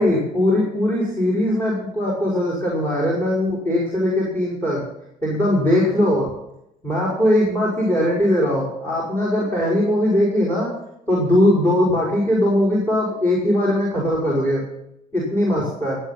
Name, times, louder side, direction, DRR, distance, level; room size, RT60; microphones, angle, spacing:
voice 1, 0.0-4.8 5.2-6.3 6.8-10.7 11.1-14.7 15.1-16.0, left 1 dB, 10° left, -4 dB, 5.4 m, -20 dB
19.5 x 8.3 x 5.9 m, 0.80 s
cardioid pair, 110°, 17 cm